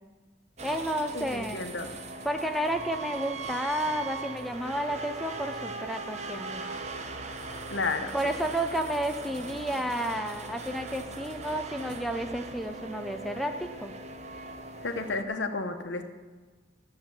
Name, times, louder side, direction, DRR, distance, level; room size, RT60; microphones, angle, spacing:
voice 1, 0.6-1.6 2.2-6.7 8.1-13.9, right 1 dB, ahead, 4 dB, 0.5 m, -31 dB
sound 1, 0.6-15.2, right 3 dB, 35° right, 0.9 m, -40 dB
voice 2, 1.1-1.9 7.7-8.3 14.8-16.1, left 3 dB, 65° left, 7 dB, 1.2 m, -32 dB
14.0 x 7.7 x 7.1 m, 1.4 s
head